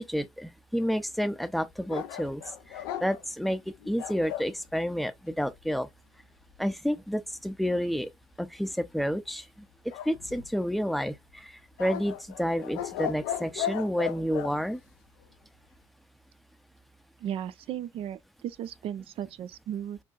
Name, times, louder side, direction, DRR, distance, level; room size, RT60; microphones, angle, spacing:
voice 1, 0.0-2.4 2.7-5.9 6.6-8.1 8.4-9.5 10.1-14.8, equal, ahead, 0.6 m, -30 dB
sound 1, 1.9-4.5 9.9-10.8 11.8-14.5, left 11 dB, 70° left, 0.5 m, -36 dB
voice 2, 17.2-20.0, right 10 dB, 50° right, 0.4 m, -36 dB
6.5 x 2.7 x 2.4 m
figure-of-eight pair, 55°, 12 cm